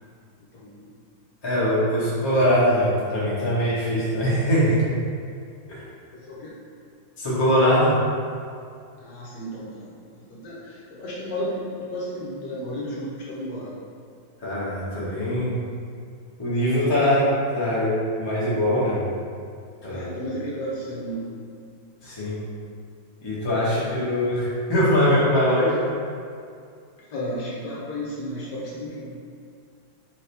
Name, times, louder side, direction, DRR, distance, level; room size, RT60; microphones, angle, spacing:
voice 1, 0.5-0.9 6.1-6.5 9.0-13.8 19.9-21.4 27.1-29.2, equal, 65° left, -6 dB, 1.3 m, -33 dB
voice 2, 1.4-4.8 5.7-5.8 7.2-8.0 14.4-15.6 16.4-17.3 17.5-19.0 19.8-20.1 22.0-22.4 23.2-26.0, equal, 20° left, -9 dB, 0.8 m, -22 dB
4.9 x 3.1 x 3.3 m, 2.3 s
omnidirectional pair, 2.1 m